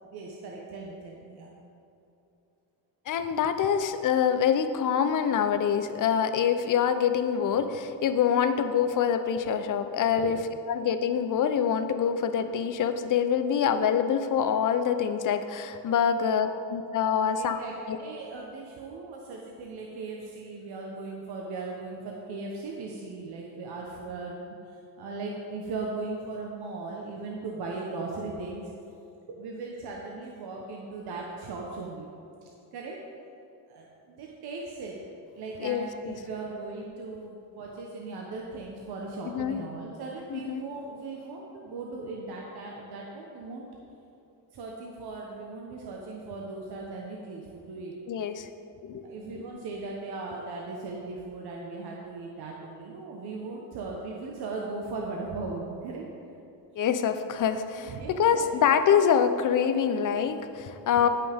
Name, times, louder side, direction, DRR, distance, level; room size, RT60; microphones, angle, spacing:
voice 1, 0.1-1.5 3.6-3.8 10.1-10.4 17.3-17.7 18.0-24.4 24.6-28.7 29.3-32.1 32.4-33.0 33.7-34.9 35.3-43.7 44.5-47.9 49.0-56.1 57.8-58.5 60.9-61.1, right 3 dB, 60° right, -1 dB, 1.2 m, -38 dB
voice 2, 3.1-10.4 10.7-17.6 17.9-18.0 35.6-35.9 39.3-39.6 40.3-40.6 48.1-48.5 48.8-49.1 49.4-49.5 56.8-61.1, left 8 dB, 45° left, 9 dB, 0.7 m, -25 dB
16.5 x 5.9 x 3.6 m, 2.8 s
cardioid pair, 110°, 44 cm